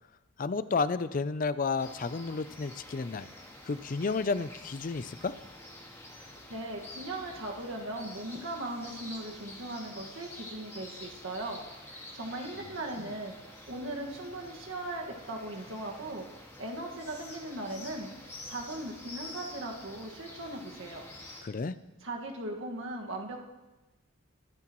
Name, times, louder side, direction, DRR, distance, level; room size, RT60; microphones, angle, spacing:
voice 1, 0.4-3.3 3.7-5.4 12.9-13.1 21.4-21.8, left 4 dB, 40° left, 14 dB, 0.4 m, -31 dB
sound 1, 1.8-21.4, left 1 dB, 15° left, 1.7 m, -48 dB
voice 2, 6.2-18.1 18.5-21.1 22.0-23.4, right 1 dB, 70° right, 0 dB, 1.8 m, -39 dB
22.5 x 9.7 x 3.1 m, 1.1 s
head